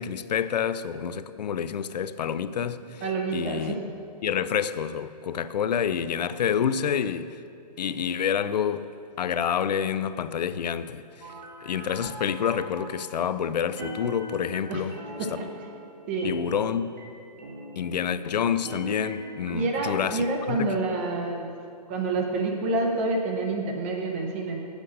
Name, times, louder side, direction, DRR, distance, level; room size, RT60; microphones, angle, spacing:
voice 1, 0.0-3.0 3.3-3.8 4.2-7.4 7.8-8.9 9.2-11.3 11.6-15.0 16.2-17.0 17.8-20.7, left 8 dB, 75° left, 0.5 m, -28 dB
voice 2, 3.0-3.8 14.7-14.8 15.4-15.5 16.1-16.4 19.5-21.5 21.9-24.6, right 3 dB, 20° right, 0.6 m, -28 dB
sound 1, 11.2-13.3 13.8-18.3 18.6-20.2, equal, 80° right, 2.0 m, -41 dB
8.1 x 6.4 x 6.4 m
hypercardioid pair, 165°, 21 cm